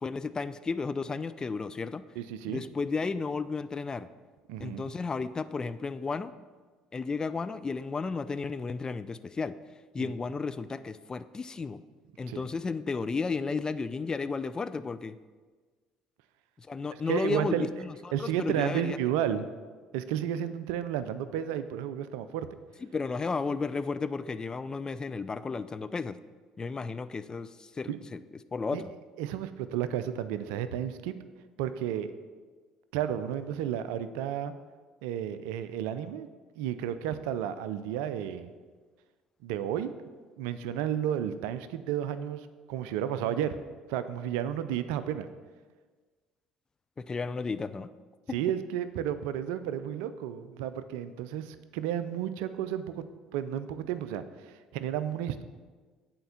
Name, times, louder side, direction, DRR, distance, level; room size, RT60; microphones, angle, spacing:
voice 1, 0.0-2.0 2.5-4.1 4.6-6.3 6.9-9.6 9.9-11.8 12.2-15.2 16.6-19.0 22.8-26.2 26.6-28.2 28.5-28.9 47.0-47.9 48.3-48.4, left 4 dB, 25° left, 13 dB, 0.4 m, -33 dB
voice 2, 2.2-2.6 4.5-4.9 10.0-10.1 12.3-12.4 17.1-17.7 18.1-19.5 19.9-22.5 27.9-28.0 28.7-28.8 29.2-31.2 31.6-32.1 32.9-34.5 35.0-36.3 36.6-38.5 39.4-39.9 40.4-43.6 43.9-45.3 48.3-53.0 53.3-55.4, right 10 dB, 75° right, 12 dB, 0.4 m, -32 dB
7.8 x 4.5 x 6.9 m, 1.4 s
hypercardioid pair, 60°, 3 cm